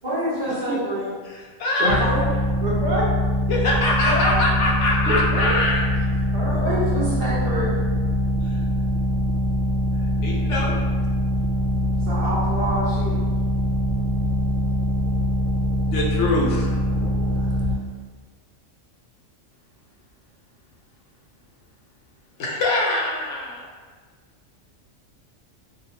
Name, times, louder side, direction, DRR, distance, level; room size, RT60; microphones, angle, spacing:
voice 1, 0.0-1.1 4.0-4.4 6.5-7.8 12.0-13.2, right 1 dB, 40° right, -10 dB, 1.0 m, -27 dB
voice 2, 1.3-2.0 3.5-5.8 8.4-8.6 10.2-10.8 15.8-16.7 22.4-23.7, left 2 dB, 75° left, -3 dB, 0.9 m, -23 dB
voice 3, 1.8-2.3 2.6-3.1 5.1-5.5 6.3-7.2 16.9-17.6, right 1 dB, 70° right, -5 dB, 0.9 m, -27 dB
sound 1, 1.9-17.8, equal, 35° left, 0.7 m, -23 dB
2.7 x 2.4 x 2.5 m, 1.5 s
omnidirectional pair, 1.3 m